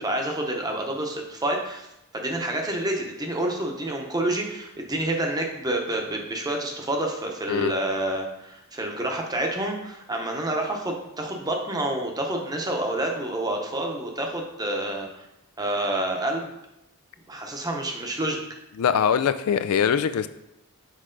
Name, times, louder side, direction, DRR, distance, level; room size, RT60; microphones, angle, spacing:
voice 1, 0.0-1.9 2.1-15.3 15.6-16.5 17.3-18.4, right 1 dB, 15° right, 2 dB, 0.8 m, -28 dB
voice 2, 18.8-20.3, left 7 dB, 75° left, 12 dB, 0.4 m, -22 dB
6.5 x 4.8 x 3.8 m, 0.86 s
head